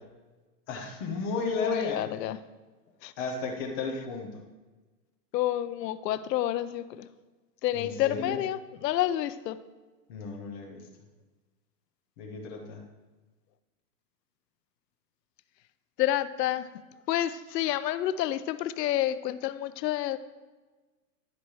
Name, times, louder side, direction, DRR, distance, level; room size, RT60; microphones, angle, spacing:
voice 1, 0.7-2.0 3.2-4.4 7.7-8.4 10.1-10.9 12.2-12.8, left 4 dB, 15° left, 1 dB, 0.4 m, -34 dB
voice 2, 1.4-2.4 3.0-3.1 5.3-7.1 7.6-9.6 16.0-16.7 17.1-20.2, left 13 dB, 75° left, 13 dB, 0.7 m, -29 dB
10.5 x 4.2 x 4.7 m, 1.3 s
supercardioid pair, 155°, 49 cm